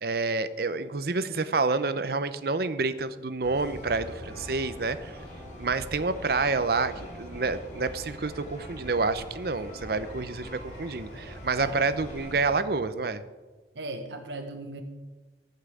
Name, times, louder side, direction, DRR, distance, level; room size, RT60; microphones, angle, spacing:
voice 1, 0.0-5.2 5.6-13.2, right 3 dB, 60° right, 13 dB, 0.7 m, -28 dB
voice 2, 1.9-2.4 11.6-11.8 13.7-14.8, right 2 dB, 85° right, 4 dB, 1.4 m, -38 dB
sound 1, 3.4-12.6, equal, 45° left, 5.0 m, -42 dB
15.0 x 5.7 x 8.2 m, 1.3 s
head